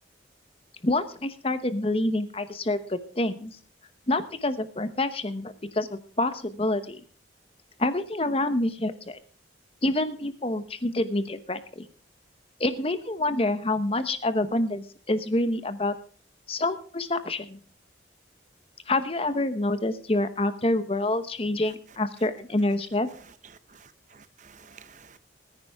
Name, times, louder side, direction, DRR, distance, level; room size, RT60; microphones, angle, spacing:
voice 1, 0.8-3.6 4.1-7.0 7.8-9.2 9.8-11.9 12.6-16.0 16.5-17.6 18.9-23.1, left 2 dB, 30° left, 0.9 m, -27 dB
voice 2, 23.7-25.2, right 6 dB, 40° right, 0.7 m, -52 dB
19.0 x 9.9 x 3.5 m
head